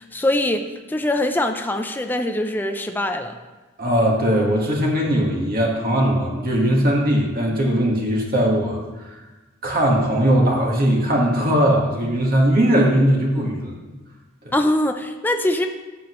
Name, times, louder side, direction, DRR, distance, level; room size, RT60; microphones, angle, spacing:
voice 1, 0.0-3.4 14.5-15.7, left 1 dB, 10° left, 5 dB, 0.5 m, -23 dB
voice 2, 3.8-9.1 9.6-13.7 14.4-14.5, equal, 45° right, -1 dB, 1.6 m, -19 dB
13.5 x 7.8 x 3.1 m, 1.2 s
head